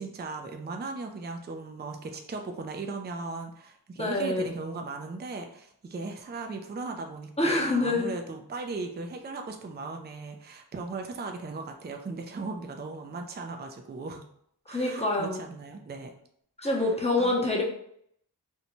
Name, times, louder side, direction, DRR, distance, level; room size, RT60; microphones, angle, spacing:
voice 1, 0.0-14.2 14.7-16.1 16.6-16.9 17.2-17.3, right 3 dB, 25° right, 4 dB, 0.3 m, -37 dB
voice 2, 4.0-4.4 7.4-8.1 14.7-15.4 16.6-17.6, left 2 dB, 15° left, -1 dB, 0.6 m, -26 dB
2.6 x 2.1 x 2.9 m, 0.69 s
wide cardioid pair, 50°, 40 cm